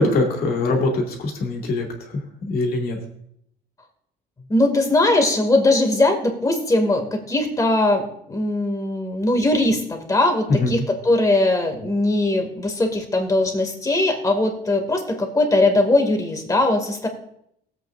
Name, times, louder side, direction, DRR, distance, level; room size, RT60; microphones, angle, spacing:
voice 1, 0.0-1.9 2.4-3.0 10.5-10.7, left 2 dB, 65° left, 0 dB, 2.5 m, -21 dB
voice 2, 4.5-17.1, left 2 dB, 20° left, 3 dB, 2.2 m, -20 dB
19.5 x 8.0 x 2.5 m, 0.72 s
cardioid pair, 110°, 17 cm